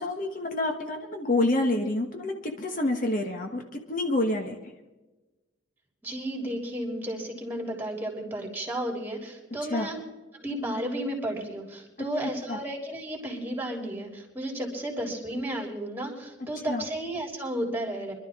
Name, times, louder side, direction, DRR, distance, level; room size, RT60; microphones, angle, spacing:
voice 1, 0.0-4.7 9.7-9.9 12.2-12.6 16.7-16.8, left 2 dB, 45° left, 4 dB, 1.2 m, -28 dB
voice 2, 6.0-10.0 10.3-18.1, right 1 dB, 10° right, 0 dB, 3.2 m, -33 dB
24.5 x 12.0 x 3.6 m, 1.1 s
head